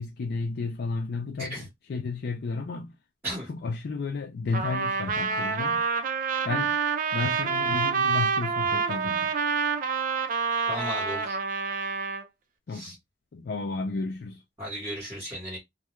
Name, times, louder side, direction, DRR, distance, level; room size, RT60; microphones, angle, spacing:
voice 1, 0.0-3.0 3.5-5.9 6.4-6.7 7.1-9.3 12.7-13.0 13.3-14.4, left 4 dB, 55° left, 0.3 m, -32 dB
Trumpet, 4.5-12.2, right 5 dB, 45° right, 0.4 m, -27 dB
voice 2, 10.7-11.4 12.7-13.0 14.6-15.6, equal, 10° right, 1.1 m, -35 dB
2.2 x 2.2 x 3.0 m
head